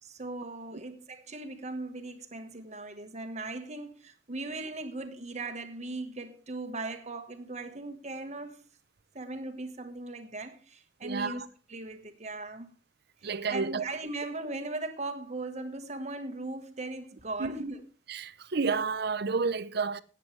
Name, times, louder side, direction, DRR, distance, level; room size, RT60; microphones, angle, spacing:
voice 1, 0.0-8.6 9.1-11.4 11.7-12.7 13.2-17.8, right 2 dB, 35° right, 1.4 m, -38 dB
voice 2, 11.0-11.5 13.2-13.8 17.4-17.7 18.1-20.0, right 4 dB, 55° right, 0.7 m, -30 dB
17.5 x 9.1 x 3.3 m
head